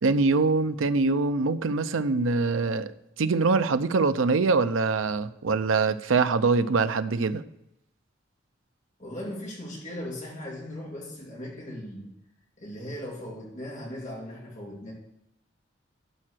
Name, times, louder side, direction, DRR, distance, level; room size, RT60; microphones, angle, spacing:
voice 1, 0.0-2.9 3.2-7.4, right 4 dB, 85° right, 0.6 m, -24 dB
voice 2, 9.0-12.1 12.6-14.9, left 1 dB, 40° left, 2.8 m, -38 dB
12.0 x 5.0 x 6.2 m
head